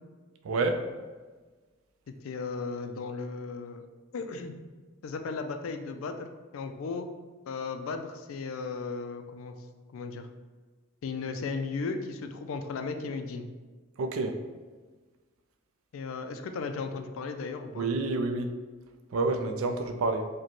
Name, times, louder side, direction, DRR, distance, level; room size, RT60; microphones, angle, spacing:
voice 1, 0.4-0.8 14.0-14.4 17.8-18.5 19.1-20.3, right 3 dB, 75° right, 6 dB, 0.4 m, -28 dB
voice 2, 2.1-3.8 4.1-4.5 5.0-6.3 6.5-7.1 7.5-9.5 9.9-10.3 11.0-13.5 15.9-17.9, left 4 dB, 70° left, 7 dB, 0.3 m, -35 dB
4.9 x 2.2 x 3.0 m, 1.4 s
head